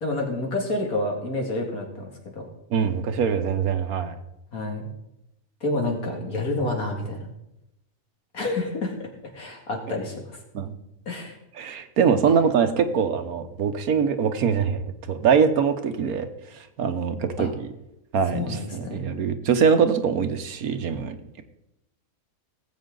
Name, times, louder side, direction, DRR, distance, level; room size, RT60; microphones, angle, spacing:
voice 1, 0.0-2.5 4.5-4.9 5.6-7.3 8.3-9.0 9.3-10.4 11.1-11.4 17.4-17.5 18.3-19.1, left 2 dB, 80° left, 0 dB, 2.7 m, -29 dB
voice 2, 2.7-4.2 10.5-10.7 11.6-16.3 16.5-17.7 18.1-21.1, right 6 dB, 90° right, 8 dB, 1.4 m, -23 dB
18.0 x 8.0 x 3.9 m, 0.86 s
omnidirectional pair, 1.5 m